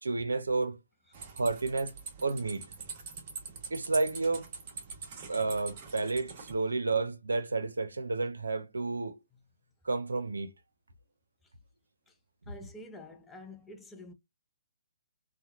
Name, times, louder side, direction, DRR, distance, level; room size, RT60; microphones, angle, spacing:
voice 1, 0.0-0.8 1.4-1.9 2.2-2.7 3.7-4.4 5.3-9.2 9.8-10.5, right 3 dB, 85° right, 0.6 m, -31 dB
sound 1, 1.1-6.5, right 5 dB, 40° right, 1.0 m, -44 dB
voice 2, 12.5-14.1, left 1 dB, 10° left, 0.5 m, -48 dB
2.8 x 2.1 x 2.3 m
hypercardioid pair, 140°, 0 cm